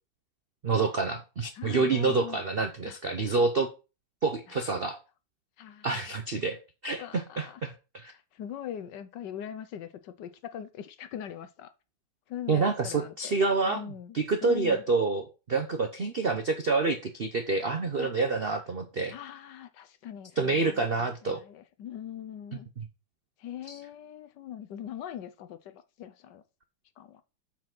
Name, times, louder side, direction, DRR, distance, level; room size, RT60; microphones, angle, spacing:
voice 1, 0.6-3.7 4.2-5.0 5.8-6.6 6.8-8.1 12.5-13.8 14.1-19.1 20.4-21.4 22.8-22.9 23.7-23.8, right 4 dB, 60° right, 0.6 m, -27 dB
voice 2, 1.5-2.4 2.8-3.3 4.5-4.6 5.6-6.0 7.0-7.6 8.1-11.7 12.3-13.3 13.7-14.2 14.4-14.8 18.0-18.1 19.1-22.7 23.4-26.4 27.0-27.2, left 10 dB, 65° left, 1.3 m, -41 dB
7.3 x 5.7 x 6.0 m
omnidirectional pair, 2.2 m